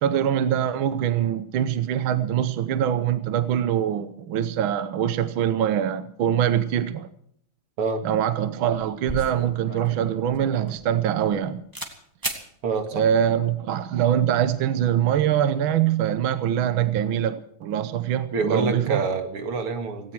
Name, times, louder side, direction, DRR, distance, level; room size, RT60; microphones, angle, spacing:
voice 1, 0.0-7.1 8.0-11.6 12.9-19.0, right 10 dB, 70° right, 12 dB, 1.6 m, -23 dB
sound 1, 9.1-11.4 11.7-11.9 12.2-12.4, equal, 10° right, 2.1 m, -35 dB
voice 2, 12.6-13.1 18.3-20.1, right 4 dB, 90° right, 6 dB, 2.9 m, -26 dB
17.5 x 17.5 x 4.7 m, 0.67 s
omnidirectional pair, 2.4 m